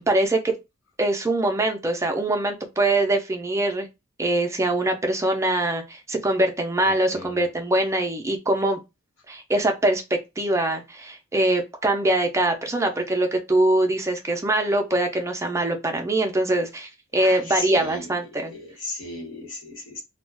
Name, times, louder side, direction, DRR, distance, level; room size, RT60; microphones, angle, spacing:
voice 1, 0.1-0.5 1.0-3.9 4.2-8.8 9.3-18.5, right 1 dB, 15° right, 0.5 m, -23 dB
voice 2, 6.8-7.4 17.1-18.1 18.5-20.0, left 2 dB, 80° left, 1.1 m, -36 dB
2.4 x 2.2 x 3.2 m
head